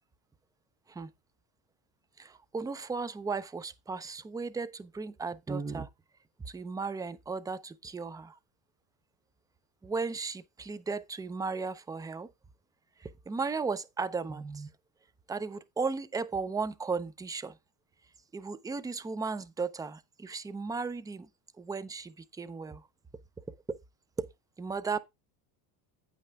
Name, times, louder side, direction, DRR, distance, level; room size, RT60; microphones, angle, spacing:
voice 1, 2.2-5.9 6.5-8.4 9.8-12.3 13.0-14.7 15.3-17.5 18.3-21.3 21.6-22.8 24.2-24.3 24.6-25.0, right 4 dB, 10° right, 0.4 m, -35 dB
8.8 x 5.6 x 3.5 m
cardioid pair, 110°, 43 cm